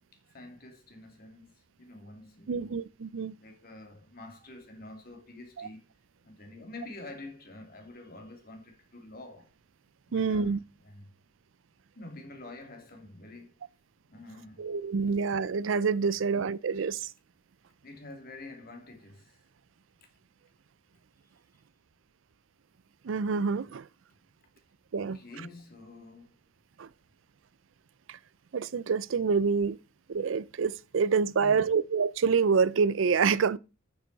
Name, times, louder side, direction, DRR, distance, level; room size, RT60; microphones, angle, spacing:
voice 1, 0.3-2.8 3.4-5.8 6.2-9.5 10.1-11.1 11.9-13.6 14.1-14.7 16.1-16.3 17.8-19.4 25.0-26.3 31.3-31.7, left 2 dB, 50° left, 2.5 m, -47 dB
voice 2, 2.5-3.3 5.6-5.7 10.1-10.6 14.6-17.1 23.0-23.9 24.9-25.2 26.8-26.9 28.1-28.2 28.5-29.8 30.1-33.6, right 5 dB, 70° right, 0.5 m, -27 dB
9.2 x 7.6 x 4.0 m
head